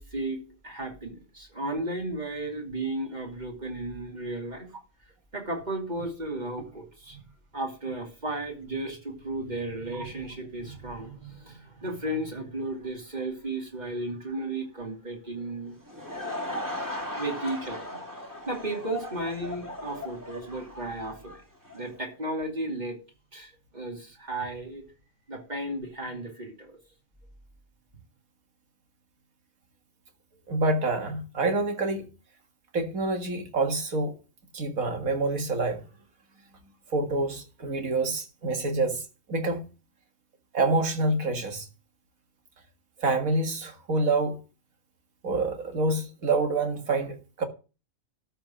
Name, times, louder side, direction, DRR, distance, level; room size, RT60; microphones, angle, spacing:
voice 1, 0.0-4.7 5.3-7.3 7.5-15.8 17.2-18.0 18.5-21.4 21.7-23.0 23.3-24.9 25.3-26.8, right 2 dB, 30° right, 2.8 m, -34 dB
Laughter / Crowd, 15.7-22.0, left 1 dB, 15° right, 2.2 m, -37 dB
voice 2, 30.5-32.1 32.7-34.2 34.5-35.8 36.9-39.6 40.5-41.7 43.0-44.4 45.2-47.5, right 2 dB, 75° right, 2.2 m, -27 dB
13.0 x 4.6 x 7.3 m
omnidirectional pair, 1.5 m